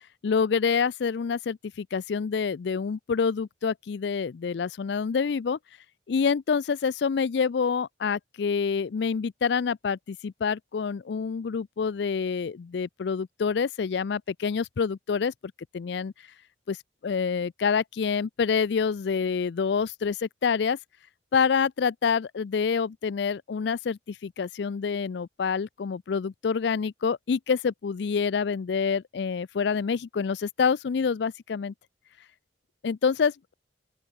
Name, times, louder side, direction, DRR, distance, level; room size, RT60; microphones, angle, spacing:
voice 1, 0.2-5.6 6.1-15.3 15.7-16.1 16.7-16.8 17.0-20.8 21.3-31.7 32.8-33.5, left 6 dB, 65° left, 0.4 m, -27 dB
open air
head